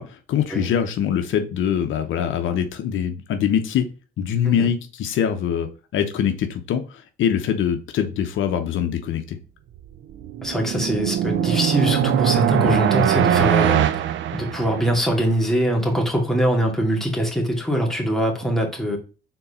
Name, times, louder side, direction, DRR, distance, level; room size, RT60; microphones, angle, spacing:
voice 1, 0.0-3.9 4.2-9.4 12.6-12.8, left 8 dB, 75° left, 7 dB, 0.9 m, -23 dB
sound 1, 9.9-15.1, right 10 dB, 75° right, 0.6 m, -21 dB
voice 2, 10.4-14.0 14.3-19.0, equal, ahead, 0 dB, 2.3 m, -23 dB
4.6 x 3.9 x 5.6 m, 0.34 s
cardioid pair, 90°, 20 cm